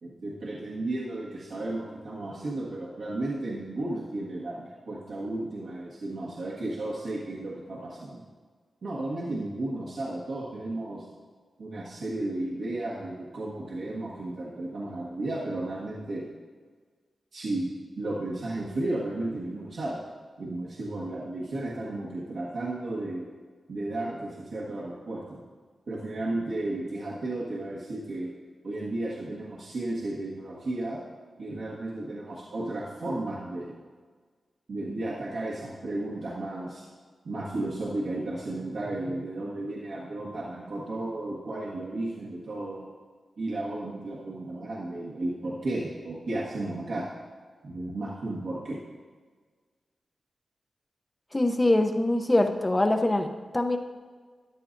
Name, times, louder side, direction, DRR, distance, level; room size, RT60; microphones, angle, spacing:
voice 1, 0.0-8.2 8.8-11.1 11.6-16.3 17.3-20.0 20.4-23.3 23.7-25.4 25.9-28.3 28.6-31.0 31.4-33.8 34.7-36.8 37.2-42.9 43.4-47.1 47.6-48.8, right 2 dB, 65° right, -6 dB, 1.5 m, -33 dB
voice 2, 51.3-53.3 53.5-53.8, left 1 dB, 15° left, 5 dB, 0.7 m, -23 dB
13.5 x 11.0 x 2.6 m, 1.5 s
wide cardioid pair, 140°, 0 cm